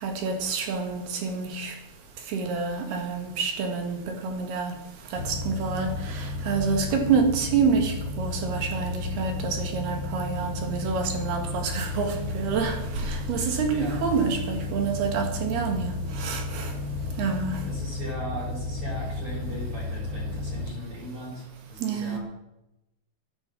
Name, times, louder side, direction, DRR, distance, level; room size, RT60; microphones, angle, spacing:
voice 1, 0.0-1.8 2.3-4.7 5.1-16.7 17.2-17.6 21.8-22.2, right 5 dB, 80° right, 4 dB, 4.1 m, -28 dB
sound 1, 5.1-20.7, left 2 dB, 65° left, 1.6 m, -33 dB
voice 2, 17.6-22.2, equal, 35° right, -4 dB, 5.6 m, -38 dB
13.5 x 10.5 x 7.5 m, 0.92 s
omnidirectional pair, 4.6 m